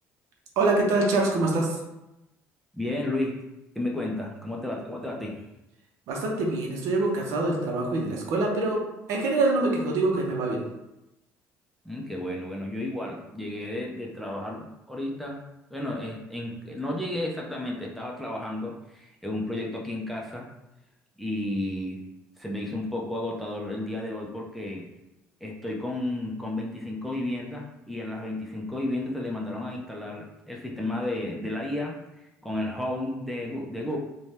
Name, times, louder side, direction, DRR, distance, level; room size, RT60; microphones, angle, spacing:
voice 1, 0.6-1.8 6.1-8.8 9.1-10.6, right 2 dB, 75° right, 0 dB, 0.7 m, -25 dB
voice 2, 2.7-3.4 3.8-5.4 11.8-15.4 15.7-20.5 21.2-22.0 22.4-24.9 25.4-34.0, left 1 dB, ahead, -2 dB, 0.4 m, -32 dB
2.7 x 2.2 x 3.2 m, 0.94 s
cardioid pair, 125°, 5 cm